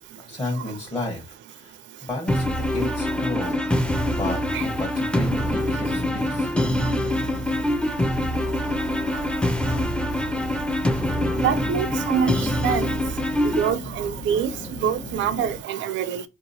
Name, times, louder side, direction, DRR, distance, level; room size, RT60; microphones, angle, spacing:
voice 1, 0.2-3.6 4.1-6.5, left 2 dB, 25° left, 1.1 m, -32 dB
sound 1, 2.3-13.7, left 1 dB, 5° left, 0.5 m, -24 dB
sound 2, 5.1-15.6, left 1 dB, 80° left, 1.2 m, -40 dB
voice 2, 11.4-12.9 13.6-14.5 14.8-16.2, right 8 dB, 70° right, 0.4 m, -25 dB
4.6 x 2.8 x 2.7 m
cardioid pair, 90°, 20 cm